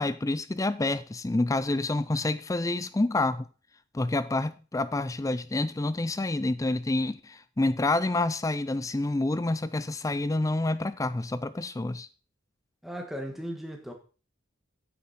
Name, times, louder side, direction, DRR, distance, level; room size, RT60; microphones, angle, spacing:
voice 1, 0.0-3.5 3.9-12.1, left 2 dB, 15° left, 0.4 m, -28 dB
voice 2, 12.8-13.9, equal, ahead, 1.7 m, -36 dB
9.2 x 8.7 x 4.3 m
head